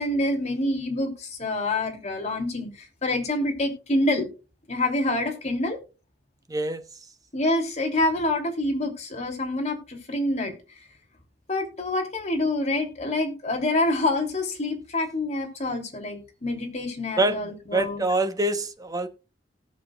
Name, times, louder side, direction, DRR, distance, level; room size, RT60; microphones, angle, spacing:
voice 1, 0.0-4.3 4.7-5.8 7.3-10.8 11.5-18.0, left 2 dB, 40° left, 3.1 m, -27 dB
voice 2, 6.5-6.8 17.2-17.4 17.7-19.1, right 2 dB, 20° right, 1.2 m, -25 dB
18.5 x 7.1 x 2.4 m
head